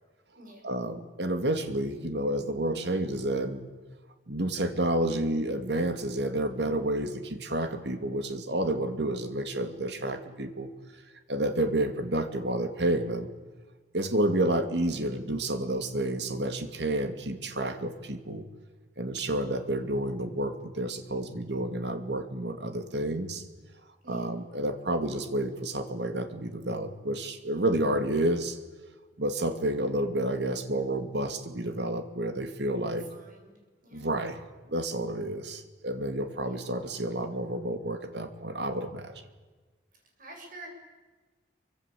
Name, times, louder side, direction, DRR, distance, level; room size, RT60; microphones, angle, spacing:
voice 1, 0.6-3.6 4.3-10.7 11.3-13.3 13.9-18.5 19.0-23.4 24.1-28.6 29.2-33.0 33.9-34.4 34.7-39.1, right 1 dB, 65° right, 8 dB, 2.5 m, -30 dB
voice 2, 32.7-33.5 33.8-34.1 36.4-36.7 39.9-40.7, right 2 dB, 45° right, 2 dB, 7.3 m, -49 dB
27.5 x 24.5 x 8.5 m, 1.3 s
head